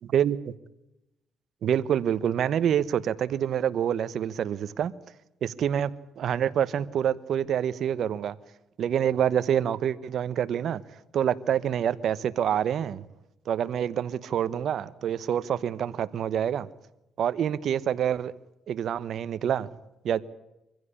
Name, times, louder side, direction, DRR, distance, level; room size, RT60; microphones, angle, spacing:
voice 1, 0.1-0.5 1.6-4.9 5.4-5.9 6.2-8.3 8.8-10.8 11.1-13.0 13.5-16.7 17.2-18.3 18.7-19.7 20.0-20.2, right 9 dB, 65° right, 15 dB, 1.0 m, -26 dB
24.0 x 15.5 x 9.9 m, 0.90 s
cardioid pair, 90°, 0 cm